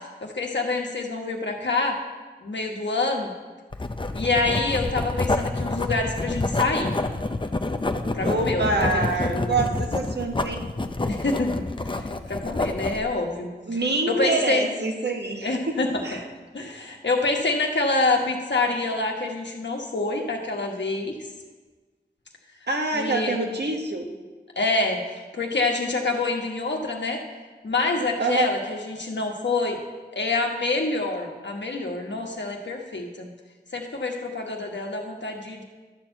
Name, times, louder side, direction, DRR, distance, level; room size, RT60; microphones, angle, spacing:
voice 1, 0.2-2.0 2.4-3.3 4.1-7.0 8.1-9.1 11.0-13.5 14.1-14.6 15.4-16.0 16.5-21.1 22.9-23.4 24.6-27.2 27.6-29.8 30.1-33.3 33.7-35.6, left 3 dB, 90° left, 1 dB, 1.3 m, -26 dB
Writing, 3.7-13.1, left 2 dB, 30° left, 0.6 m, -28 dB
voice 2, 8.2-10.6 13.7-16.2 22.7-24.1 28.2-28.5, right 3 dB, 70° right, 2 dB, 1.3 m, -26 dB
12.0 x 4.5 x 7.7 m, 1.3 s
wide cardioid pair, 60°, 18 cm